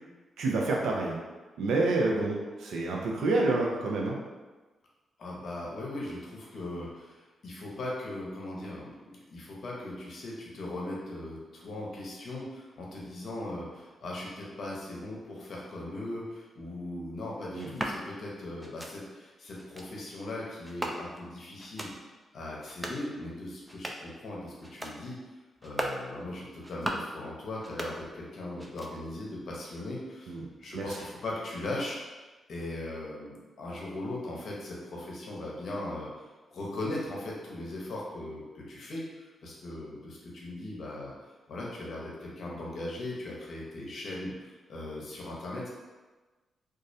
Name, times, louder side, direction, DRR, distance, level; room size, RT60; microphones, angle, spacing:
voice 1, 0.4-1.2 1.6-4.2 17.5-17.7 30.3-30.5 30.7-30.8, right 2 dB, 85° right, -1 dB, 0.4 m, -28 dB
voice 2, 5.2-21.9 22.3-25.2 25.6-45.7, left 1 dB, 70° left, -4 dB, 0.6 m, -39 dB
sound 1, 17.6-18.0 18.6-18.9 19.6-19.9 20.6-21.3 21.6-21.9 22.6-23.0 23.6-24.1 24.6-25.0 25.6-26.0 26.6-27.1 27.6-28.3 28.6-29.2, right 1 dB, 10° right, 0.3 m, -38 dB
2.3 x 2.0 x 2.6 m, 1.3 s
supercardioid pair, 55°, 0 cm